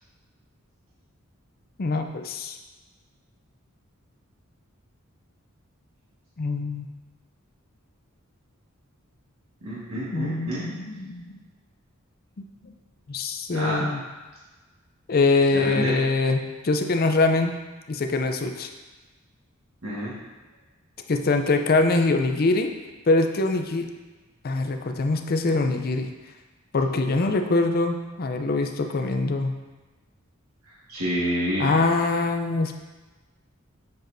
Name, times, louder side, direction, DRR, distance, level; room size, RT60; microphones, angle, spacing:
voice 1, 1.8-2.6 6.4-6.9 10.1-11.4 12.6-12.7 13.1-14.0 15.1-17.6 17.9-18.7 21.1-22.7 23.1-23.9 24.4-26.1 26.7-29.5 31.6-32.8, left 3 dB, 45° left, 6 dB, 0.5 m, -23 dB
voice 2, 9.6-10.7 13.5-13.9 15.5-16.0 19.8-20.1 30.9-31.8, equal, 85° right, -9 dB, 1.6 m, -28 dB
7.5 x 5.9 x 2.6 m, 1.2 s
head